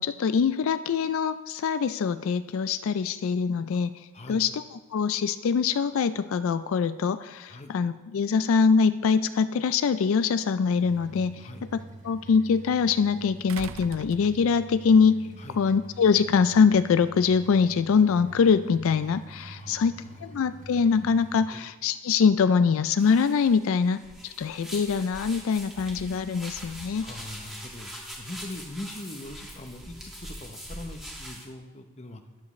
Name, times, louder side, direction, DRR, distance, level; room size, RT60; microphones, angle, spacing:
voice 1, 0.0-3.9 4.3-11.4 11.7-15.3 15.6-27.1, left 5 dB, 65° left, 13 dB, 0.3 m, -23 dB
sound 1, 10.2-10.3 13.5-14.8 16.1-16.2, right 7 dB, 60° right, 0.4 m, -42 dB
sound 2, 10.7-21.5, right 2 dB, 35° right, 0.8 m, -46 dB
voice 2, 19.6-20.3 21.5-21.6 27.0-27.9 28.2-32.2, left 1 dB, 30° left, 7 dB, 0.7 m, -41 dB
sound 3, 23.0-31.4, equal, ahead, 1.5 m, -42 dB
12.0 x 10.5 x 3.1 m, 1.2 s
head